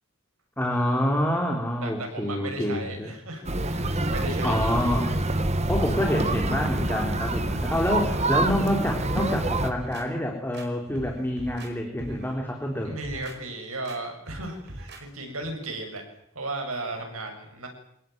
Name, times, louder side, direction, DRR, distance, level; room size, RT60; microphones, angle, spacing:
voice 1, 0.6-3.1 4.4-5.1 5.7-13.0, left 1 dB, 10° left, 1 dB, 3.7 m, -27 dB
voice 2, 1.8-4.7 12.8-16.0 16.3-17.7, right 2 dB, 80° right, 3 dB, 7.6 m, -35 dB
sound 1, 3.4-9.7, right 2 dB, 30° right, 1.7 m, -26 dB
sound 2, 9.1-10.1 10.5-11.7 12.0-12.3 12.8-13.4 13.8-14.0 14.3-15.0 15.4-15.5, right 1 dB, 55° right, 5.1 m, -41 dB
25.0 x 19.5 x 9.4 m, 0.75 s
head